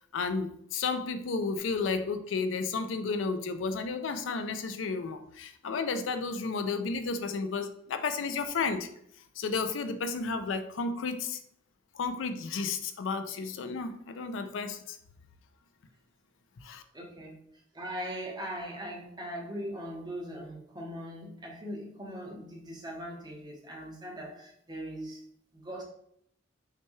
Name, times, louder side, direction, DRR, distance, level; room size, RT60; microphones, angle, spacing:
voice 1, 0.0-8.9 9.4-11.4 11.9-15.0 16.6-16.8, left 4 dB, 80° left, 9 dB, 0.4 m, -32 dB
voice 2, 16.9-17.4 17.7-25.2 25.5-25.8, equal, 20° right, -2 dB, 0.9 m, -40 dB
5.7 x 2.3 x 3.1 m, 0.70 s
head